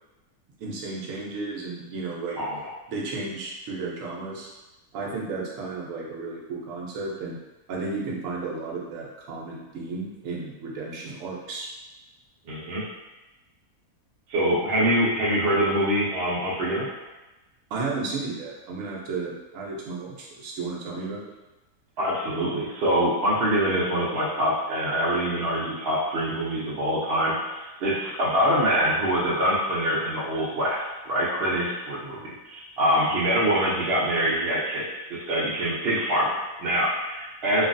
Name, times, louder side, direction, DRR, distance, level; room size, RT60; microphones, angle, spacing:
voice 1, 0.6-2.4 2.9-4.5 4.9-7.4 7.7-11.7 17.7-21.3, right 3 dB, 60° right, -3 dB, 0.9 m, -33 dB
voice 2, 2.4-2.7 12.5-12.8 14.3-16.9 22.0-37.7, equal, 80° right, -6 dB, 0.5 m, -25 dB
3.1 x 2.3 x 2.5 m, 1.1 s
omnidirectional pair, 1.8 m